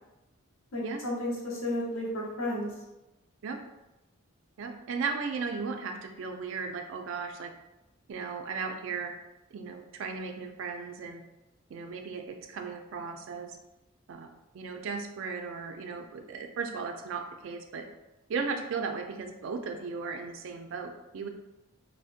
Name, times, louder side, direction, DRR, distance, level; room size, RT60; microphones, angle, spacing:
voice 1, 0.7-2.7, left 1 dB, 75° left, -4 dB, 0.8 m, -32 dB
voice 2, 4.6-7.5 8.1-9.1 9.5-11.2 11.7-13.6 14.1-14.3 14.5-17.9 18.3-21.3, right 5 dB, 65° right, 5 dB, 0.3 m, -36 dB
2.6 x 2.1 x 2.4 m, 0.97 s
head